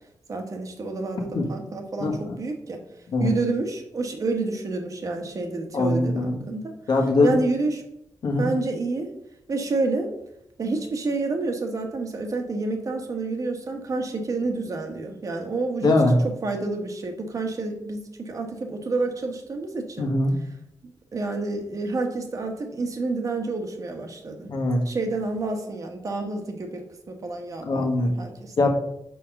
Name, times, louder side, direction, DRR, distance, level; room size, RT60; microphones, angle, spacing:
voice 1, 0.3-2.8 3.2-6.7 7.2-7.8 8.4-9.1 9.5-10.1 10.6-15.9 16.2-20.1 21.1-24.5 24.8-28.7, right 3 dB, 45° right, 4 dB, 1.1 m, -29 dB
voice 2, 2.0-2.4 3.1-3.3 5.7-6.4 6.9-7.3 8.2-8.5 15.8-16.2 20.0-20.3 24.5-24.8 27.6-28.1 28.6-28.7, left 2 dB, 65° left, 2 dB, 1.4 m, -21 dB
5.1 x 4.7 x 6.3 m, 0.77 s
wide cardioid pair, 150°, 8 cm